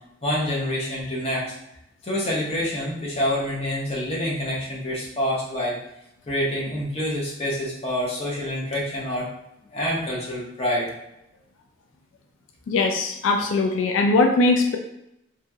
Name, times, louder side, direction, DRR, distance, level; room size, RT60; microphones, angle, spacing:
voice 1, 0.2-1.5 2.0-5.8 6.3-9.3 9.7-10.9, equal, 30° left, -4 dB, 0.7 m, -27 dB
voice 2, 12.7-14.8, left 3 dB, 85° left, 4 dB, 0.3 m, -20 dB
2.9 x 2.7 x 2.3 m, 0.82 s
head